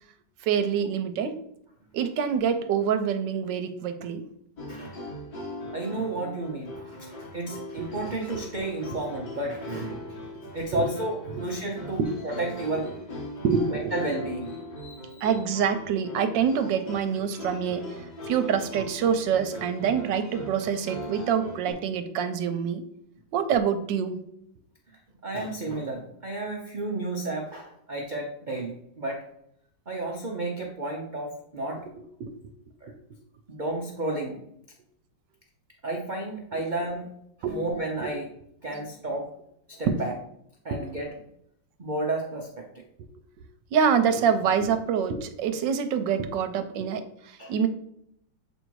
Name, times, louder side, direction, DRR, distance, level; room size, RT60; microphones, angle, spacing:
voice 1, 0.4-1.4 1.9-4.3 7.8-7.9 9.9-10.0 10.3-10.9 11.3-11.4 13.4-13.9 15.2-17.9 18.3-22.8 23.3-24.2 32.2-32.4 37.4-37.7 39.9-40.0 40.7-40.8 43.4-43.5 43.7-47.7, right 7 dB, 85° right, 9 dB, 1.3 m, -26 dB
sound 1, 4.6-21.7, left 1 dB, 60° left, 3.2 m, -40 dB
voice 2, 4.7-5.0 5.7-10.2 10.5-12.9 13.7-15.3 25.2-29.2 29.9-31.8 32.8-32.9 33.5-34.4 35.8-37.1 37.5-38.3 38.6-39.3 39.7-40.1 40.6-41.1 41.8-42.6 47.4-47.5, right 2 dB, 50° right, -1 dB, 0.5 m, -32 dB
7.8 x 2.7 x 4.6 m, 0.73 s
omnidirectional pair, 1.9 m